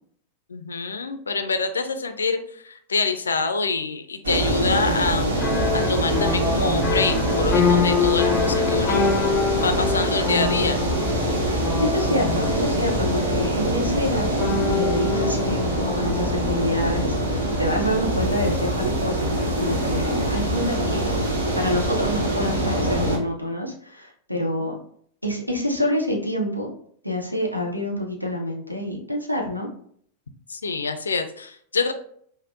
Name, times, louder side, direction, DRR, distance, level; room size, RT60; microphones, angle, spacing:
voice 1, 0.5-9.1 9.6-10.8 24.3-24.7 30.5-31.9, left 4 dB, 75° left, 8 dB, 0.4 m, -26 dB
sound 1, 4.2-23.2, right 1 dB, 70° right, 1.0 m, -24 dB
sound 2, 5.4-16.6, left 6 dB, 25° left, 0.5 m, -26 dB
voice 2, 11.8-21.1 21.5-24.8 25.2-26.7 27.0-29.7, left 1 dB, 90° right, 0 dB, 0.7 m, -27 dB
5.2 x 2.0 x 2.5 m, 0.63 s
figure-of-eight pair, 90°, 0 cm